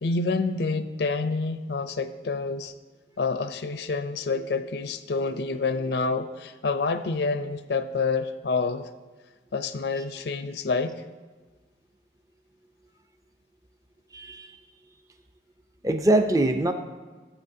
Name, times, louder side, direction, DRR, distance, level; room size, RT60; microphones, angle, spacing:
voice 1, 0.0-2.7 3.2-8.9 9.5-11.0, left 4 dB, 70° left, 10 dB, 0.5 m, -28 dB
voice 2, 14.1-14.5 15.8-16.7, right 1 dB, 20° right, 7 dB, 0.5 m, -23 dB
14.0 x 8.0 x 2.7 m, 1.3 s
head